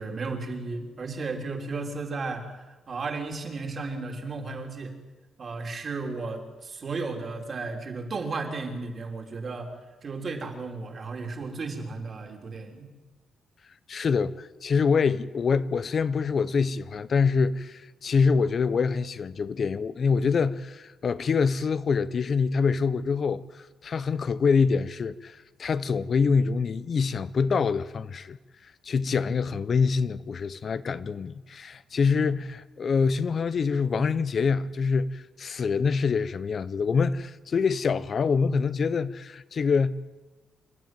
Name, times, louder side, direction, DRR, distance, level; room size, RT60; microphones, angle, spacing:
voice 1, 0.0-4.9 5.4-9.7 10.0-12.9, right 3 dB, 40° right, 3.3 m, -34 dB
voice 2, 13.9-28.4 28.8-39.9, left 5 dB, 45° left, 0.6 m, -25 dB
27.5 x 12.5 x 9.1 m
cardioid pair, 145°, 0 cm